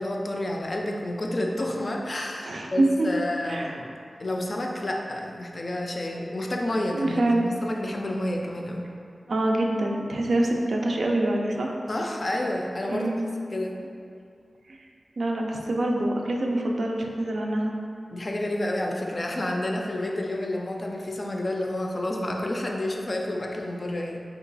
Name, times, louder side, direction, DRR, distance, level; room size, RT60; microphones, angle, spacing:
voice 1, 0.0-3.9 4.2-8.9 11.9-13.1 13.5-13.8 18.1-24.2, left 1 dB, 50° left, 1 dB, 0.3 m, -29 dB
voice 2, 2.4-3.1 3.5-3.7 6.9-7.5 9.3-11.8 12.9-13.3 14.7-14.8 15.2-17.7, right 1 dB, 80° right, 0 dB, 0.3 m, -25 dB
2.9 x 2.3 x 3.9 m, 2.3 s
cardioid pair, 50°, 0 cm